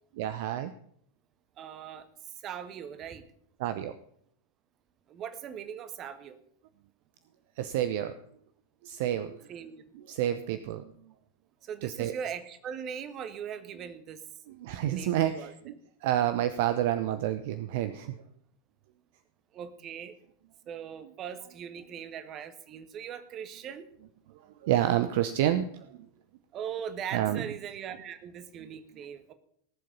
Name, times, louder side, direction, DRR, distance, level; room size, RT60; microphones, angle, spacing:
voice 1, 0.2-0.7 3.6-4.0 7.6-8.1 8.8-9.4 9.9-10.9 11.8-12.1 14.5-15.7 16.0-18.2 24.6-26.0 27.1-27.5, right 12 dB, 50° right, 12 dB, 0.8 m, -29 dB
voice 2, 1.6-2.1 2.4-3.2 5.1-6.4 9.5-9.9 11.6-14.2 14.9-15.5 19.5-20.1 20.7-23.9 26.5-29.3, right 8 dB, 30° right, 11 dB, 1.5 m, -40 dB
18.5 x 7.7 x 5.4 m, 0.66 s
figure-of-eight pair, 90°, 0 cm